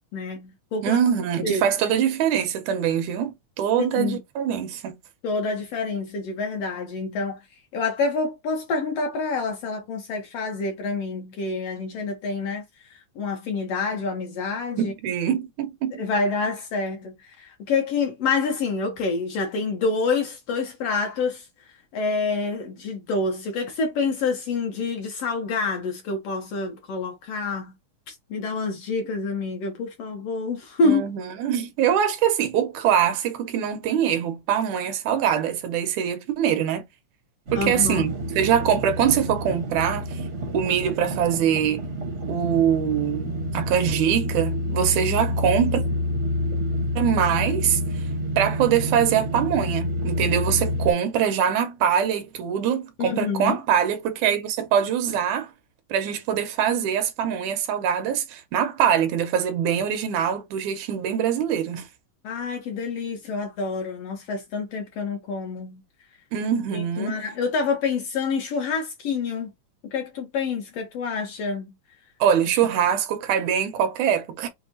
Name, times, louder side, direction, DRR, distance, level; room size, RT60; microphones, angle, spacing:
voice 1, 0.1-1.0 1.4-1.6 3.8-4.2 5.2-7.4 7.7-12.6 13.2-14.9 16.0-21.4 21.9-27.7 28.1-31.0 37.5-38.1 53.0-53.6 62.2-65.8 66.7-69.5 69.9-71.7, left 4 dB, 70° left, 1.6 m, -27 dB
voice 2, 0.8-5.0 14.8-16.0 30.8-36.9 37.5-40.2 40.5-41.8 42.3-45.8 47.0-47.8 48.4-55.5 55.9-61.9 66.3-67.2 72.2-74.5, right 9 dB, 85° right, 2.2 m, -23 dB
sound 1, 37.5-50.9, left 1 dB, 55° right, 0.8 m, -28 dB
6.3 x 2.2 x 2.7 m
omnidirectional pair, 3.5 m